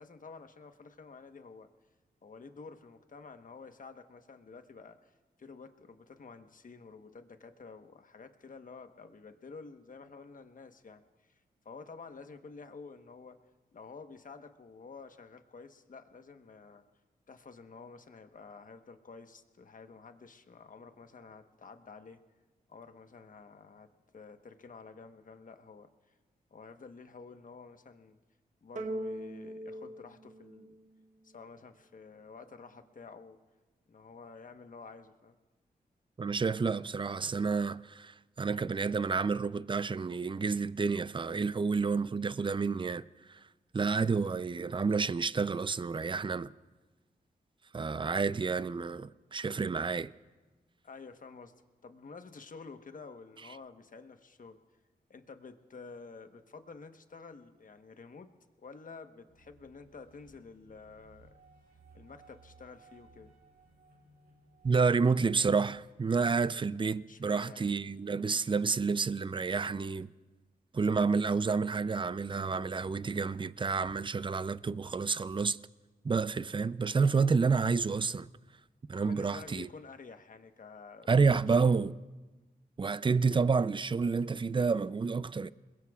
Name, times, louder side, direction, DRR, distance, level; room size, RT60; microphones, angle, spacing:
voice 1, 0.0-1.7 2.2-5.1 5.4-13.4 13.7-16.8 17.3-22.2 22.7-23.9 24.1-25.9 26.5-28.2 28.6-30.8 31.2-33.4 33.9-35.4 50.8-51.5 51.8-54.6 55.1-58.3 58.6-61.3 61.9-63.3 67.1-67.7 79.0-81.9, left 4 dB, 55° left, 1.2 m, -50 dB
sound 1, 28.8-31.3, right 1 dB, 50° right, 1.0 m, -41 dB
voice 2, 36.2-43.0 43.3-43.4 43.7-46.5 47.7-50.1 64.6-70.1 70.7-75.6 76.0-78.3 78.9-79.7 81.1-81.9 82.8-85.5, right 4 dB, 30° right, 0.5 m, -29 dB
sound 2, 59.3-65.8, right 2 dB, 75° right, 5.9 m, -60 dB
27.0 x 21.5 x 2.4 m
cardioid pair, 55°, 17 cm